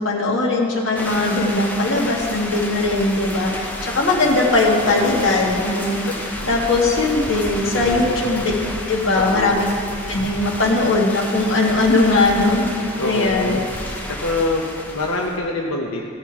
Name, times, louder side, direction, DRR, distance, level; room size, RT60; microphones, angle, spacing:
voice 1, 0.0-6.0 6.5-8.5 8.9-9.6 10.1-12.6 13.0-13.6, left 2 dB, 60° left, -2 dB, 1.8 m, -19 dB
sound 1, 0.9-15.4, left 1 dB, 10° left, 0.8 m, -31 dB
voice 2, 4.8-5.4 6.4-6.5 7.7-8.2 9.2-9.6 13.0-13.7 14.2-16.1, left 2 dB, 85° left, -2 dB, 0.9 m, -25 dB
16.5 x 5.8 x 4.8 m, 2.3 s
head